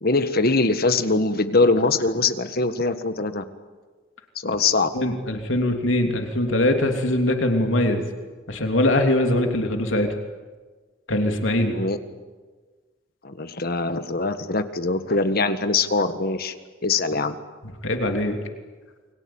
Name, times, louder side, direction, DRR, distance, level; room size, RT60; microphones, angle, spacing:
voice 1, 0.0-3.4 4.4-4.9 11.7-12.0 13.2-16.5 16.8-17.3, left 3 dB, 50° left, 10 dB, 1.6 m, -22 dB
voice 2, 4.9-8.0 8.5-10.1 11.1-11.8 17.8-18.4, left 1 dB, 75° left, 4 dB, 3.1 m, -22 dB
29.0 x 22.5 x 8.9 m, 1.4 s
head